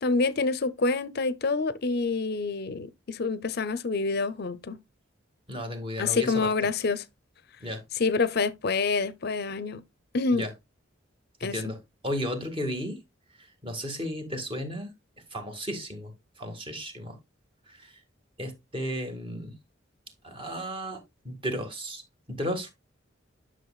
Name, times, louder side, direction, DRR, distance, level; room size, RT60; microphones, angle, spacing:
voice 1, 0.0-4.8 6.0-7.0 7.9-9.8 10.1-10.5 11.4-11.7, left 4 dB, 50° left, 0.6 m, -27 dB
voice 2, 5.5-6.5 7.6-7.8 10.3-10.5 11.4-11.8 12.0-13.0 13.6-14.9 15.3-16.1 16.4-17.2 17.7-17.9 18.4-19.6 20.2-22.0 22.3-22.7, equal, 25° right, 1.8 m, -34 dB
11.0 x 6.3 x 2.3 m
head